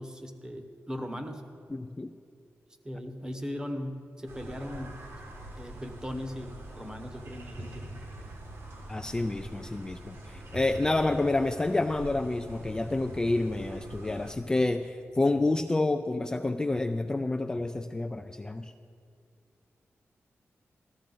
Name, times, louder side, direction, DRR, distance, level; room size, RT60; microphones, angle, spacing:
voice 1, 0.0-1.4 2.8-4.9 5.6-8.0, equal, 15° right, 6 dB, 0.9 m, -38 dB
voice 2, 1.7-2.1 8.9-18.7, left 2 dB, 15° left, 7 dB, 0.3 m, -29 dB
sound 1, 4.3-14.3, right 1 dB, 60° right, 1.6 m, -44 dB
14.5 x 13.5 x 3.9 m, 2.4 s
wide cardioid pair, 160°, 5 cm